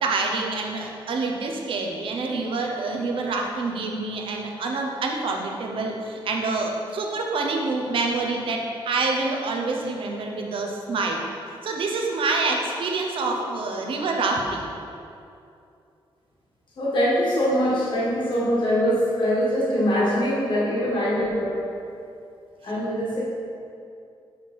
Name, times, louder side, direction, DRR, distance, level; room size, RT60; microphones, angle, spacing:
voice 1, 0.0-11.2 11.6-14.7, right 3 dB, 65° right, 1 dB, 0.8 m, -27 dB
voice 2, 16.8-21.6 22.6-23.2, equal, 55° left, -6 dB, 1.5 m, -23 dB
5.9 x 4.7 x 4.2 m, 2.6 s
wide cardioid pair, 160°, 10 cm